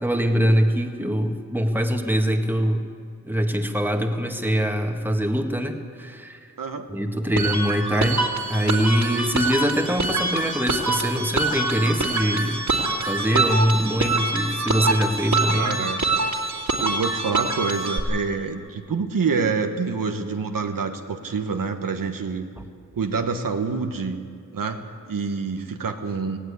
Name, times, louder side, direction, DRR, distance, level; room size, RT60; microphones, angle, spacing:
voice 1, 0.0-2.8 3.2-6.4 6.9-8.2 8.5-12.7 13.1-15.8, equal, 5° right, 3 dB, 1.9 m, -23 dB
sound 1, 7.4-18.0, right 2 dB, 60° right, 2.6 m, -25 dB
voice 2, 15.5-16.0 16.8-22.5 23.0-24.2 24.5-24.8 25.1-26.4, right 5 dB, 85° right, 5 dB, 1.4 m, -27 dB
18.5 x 17.0 x 8.5 m, 2.3 s
wide cardioid pair, 70°, 33 cm